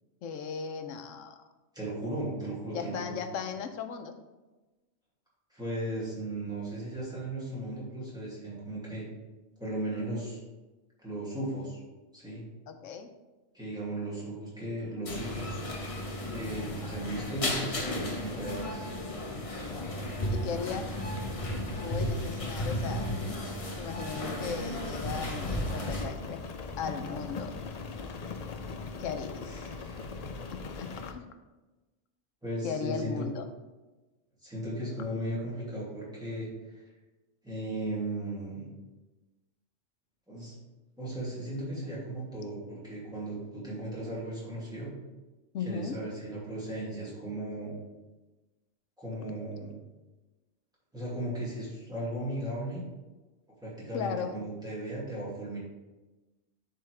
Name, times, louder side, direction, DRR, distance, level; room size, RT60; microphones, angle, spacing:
voice 1, 0.2-1.4 2.7-4.2 12.7-13.1 19.7-19.9 20.3-20.9 21.8-23.1 23.8-26.4 26.8-27.5 29.0-29.7 30.5-31.3 32.6-33.4 45.5-46.0 53.9-54.3, left 6 dB, 85° left, 7 dB, 1.0 m, -37 dB
voice 2, 1.7-3.2 5.5-9.1 9.6-10.4 11.0-11.8 12.1-12.4 13.5-15.6 16.3-18.9 29.4-30.3 32.4-33.3 34.4-36.8 37.4-38.7 40.3-40.5 41.0-44.9 45.6-47.8 49.0-49.8 50.9-52.8 53.6-55.6, right 1 dB, 5° right, -7 dB, 2.3 m, -36 dB
sound 1, 15.1-26.1, left 1 dB, 30° left, 0.8 m, -34 dB
Rain, 25.1-31.1, left 4 dB, 55° left, 0.4 m, -40 dB
10.5 x 4.0 x 3.3 m, 1.2 s
omnidirectional pair, 1.3 m